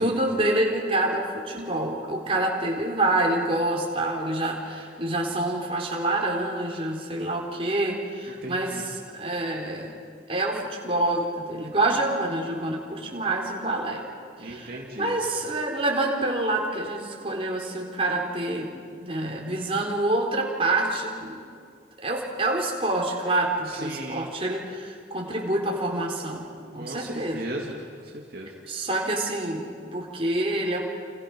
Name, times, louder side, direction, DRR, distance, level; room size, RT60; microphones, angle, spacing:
voice 1, 0.0-9.9 10.3-14.0 14.4-18.7 19.0-21.4 22.0-26.5 26.7-27.4 28.7-30.8, right 2 dB, 30° right, -1 dB, 4.1 m, -27 dB
voice 2, 8.3-8.9 14.4-15.2 23.7-24.3 26.8-28.5, right 1 dB, 50° right, -2 dB, 2.6 m, -37 dB
29.5 x 28.5 x 6.2 m, 2.3 s
head